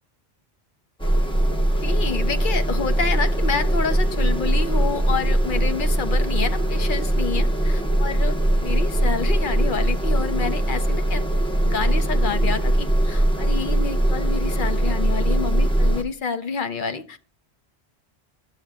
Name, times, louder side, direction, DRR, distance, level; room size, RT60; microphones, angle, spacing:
sound 1, 1.0-16.0, right 1 dB, 5° left, 0.9 m, -21 dB
voice 1, 1.8-8.4 8.6-11.2 11.6-17.2, left 5 dB, 55° left, 10 dB, 0.8 m, -28 dB
14.0 x 7.3 x 2.3 m, 0.37 s
omnidirectional pair, 1.1 m